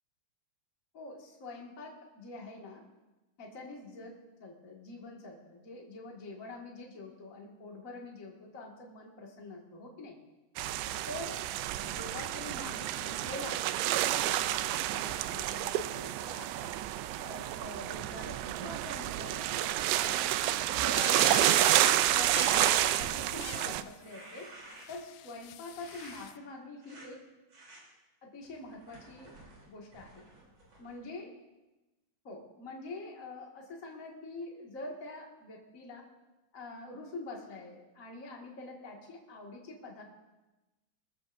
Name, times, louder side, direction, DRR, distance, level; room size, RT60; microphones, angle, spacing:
voice 1, 0.9-2.8 3.4-4.1 4.4-10.1 11.1-11.5 11.8-16.8 17.2-20.3 20.7-21.6 22.0-24.5 24.9-27.2 28.2-29.3 29.7-30.2 30.8-31.3 32.2-36.0 36.5-40.0, left 2 dB, 55° left, -1 dB, 0.8 m, -46 dB
sound 1, 10.6-23.8, right 13 dB, 85° right, 2.3 m, -29 dB
sound 2, 20.9-22.0 22.3-23.8 24.8-26.3, left 14 dB, 85° left, 2.2 m, -41 dB
sound 3, 23.9-25.1 25.8-26.3 26.8-27.1 27.5-27.8 28.4-31.0, right 2 dB, 40° right, 4.1 m, -53 dB
22.5 x 14.0 x 2.6 m, 1.1 s
omnidirectional pair, 5.0 m